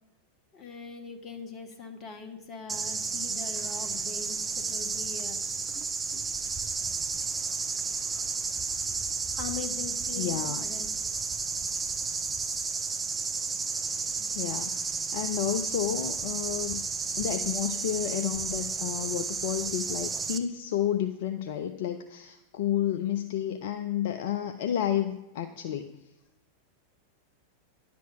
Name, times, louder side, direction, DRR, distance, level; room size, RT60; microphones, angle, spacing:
voice 1, 0.5-5.4 6.1-6.2 8.2-8.4 9.4-10.9, left 6 dB, 30° left, 5 dB, 1.5 m, -41 dB
sound 1, 2.7-20.4, right 5 dB, 15° right, 0.7 m, -32 dB
voice 2, 10.2-10.6 14.3-16.8 17.2-25.9, left 10 dB, 55° left, 8 dB, 0.5 m, -31 dB
10.5 x 6.0 x 5.8 m, 0.94 s
figure-of-eight pair, 90°, 0 cm